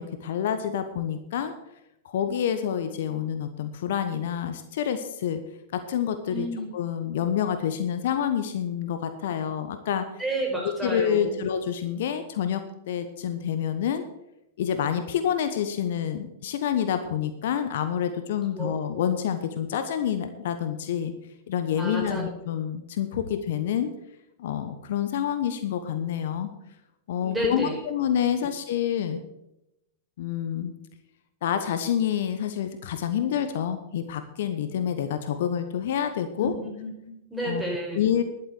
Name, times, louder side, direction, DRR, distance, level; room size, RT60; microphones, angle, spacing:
voice 1, 0.0-1.5 2.0-5.4 5.7-6.5 6.7-10.1 10.8-14.0 14.6-21.1 21.5-23.9 24.4-26.5 27.1-29.2 30.2-30.7 31.4-36.5 37.4-37.6 37.9-38.2, left 9 dB, 60° left, 9 dB, 1.0 m, -28 dB
voice 2, 6.3-6.7 10.2-11.4 18.5-18.7 21.8-22.2 27.2-27.8 36.4-36.5 36.8-38.0, right 1 dB, 5° right, -1 dB, 5.2 m, -31 dB
11.5 x 8.1 x 6.6 m, 0.87 s
figure-of-eight pair, 100°, 0 cm